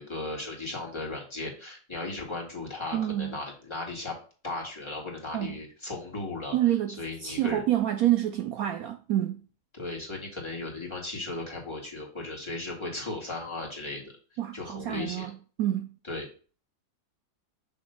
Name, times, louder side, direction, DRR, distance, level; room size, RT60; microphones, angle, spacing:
voice 1, 0.0-4.2 4.4-6.6 7.0-7.6 9.7-14.0 14.5-15.3 16.1-16.3, left 2 dB, 15° left, 1.8 m, -36 dB
voice 2, 2.9-3.4 5.3-5.6 6.5-9.4 14.4-15.9, right 12 dB, 90° right, 0.7 m, -28 dB
6.8 x 3.0 x 5.3 m
omnidirectional pair, 2.1 m